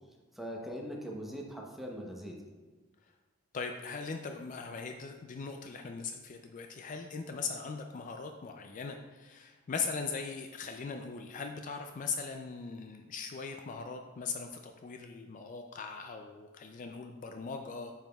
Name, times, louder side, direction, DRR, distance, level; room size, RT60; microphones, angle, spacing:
voice 1, 0.3-2.5, equal, ahead, -1 dB, 0.8 m, -41 dB
voice 2, 3.5-17.9, left 5 dB, 40° left, 5 dB, 0.3 m, -40 dB
8.9 x 5.6 x 2.3 m, 1.3 s
head